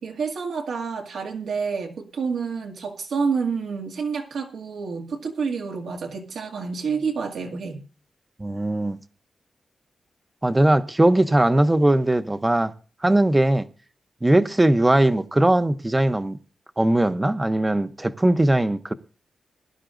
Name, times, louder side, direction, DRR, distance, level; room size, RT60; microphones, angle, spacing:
voice 1, 0.0-7.8 14.4-14.5, right 5 dB, 90° right, 2.1 m, -28 dB
voice 2, 8.4-9.0 10.4-12.7 13.0-13.7 14.2-16.4 16.8-18.9, right 1 dB, 15° right, 0.7 m, -19 dB
20.0 x 11.5 x 2.5 m
wide cardioid pair, 115°, 0 cm